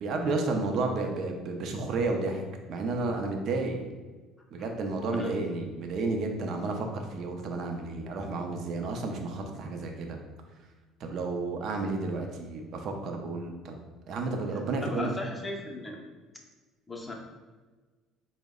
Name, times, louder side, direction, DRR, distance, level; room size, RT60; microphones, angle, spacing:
voice 1, 0.0-2.4 2.7-3.8 4.5-10.2 11.0-13.8 14.1-15.1, right 3 dB, 55° right, 3 dB, 0.5 m, -31 dB
voice 2, 14.8-16.0 16.9-17.1, left 2 dB, 15° left, 0 dB, 0.6 m, -37 dB
3.8 x 2.1 x 3.5 m, 1.3 s
cardioid pair, 115°, 0 cm